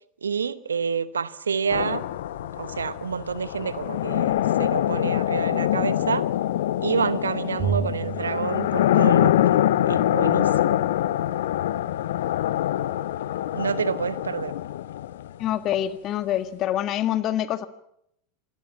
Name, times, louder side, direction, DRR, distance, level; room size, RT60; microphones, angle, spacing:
voice 1, 0.2-2.0 2.4-4.3 4.6-6.3 6.8-9.6 9.9-10.8 13.5-14.5, right 6 dB, 80° right, 16 dB, 1.0 m, -28 dB
sound 1, 1.7-15.5, left 12 dB, 65° left, 0.8 m, -24 dB
Bowed string instrument, 7.6-10.0, right 8 dB, 40° right, 1.1 m, -32 dB
voice 2, 15.4-17.7, left 12 dB, 40° left, 12 dB, 1.7 m, -26 dB
28.0 x 21.0 x 5.8 m, 0.75 s
figure-of-eight pair, 85°, 0 cm